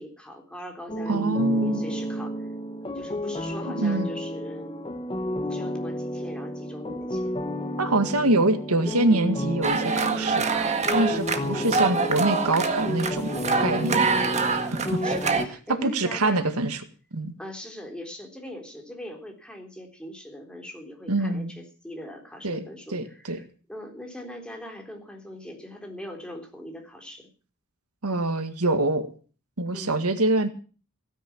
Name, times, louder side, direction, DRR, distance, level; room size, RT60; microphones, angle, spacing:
voice 1, 0.0-2.3 2.9-4.8 5.3-7.3 11.5-11.8 14.1-14.4 15.0-16.5 17.4-27.3 29.7-30.0, left 1 dB, 5° left, 2 dB, 3.7 m, -41 dB
sound 1, 0.9-15.5, equal, 25° left, 1.4 m, -31 dB
voice 2, 1.1-1.8 3.8-4.1 7.8-13.4 13.6-14.1 14.7-15.0 15.8-16.8 17.1-17.3 21.1-21.5 22.4-22.7 22.9-23.4 28.0-29.1 29.6-30.5, right 2 dB, 85° right, 9 dB, 1.9 m, -25 dB
sound 2, 9.6-15.4, right 4 dB, 30° right, 1.8 m, -26 dB
16.5 x 10.0 x 7.3 m, 0.39 s
head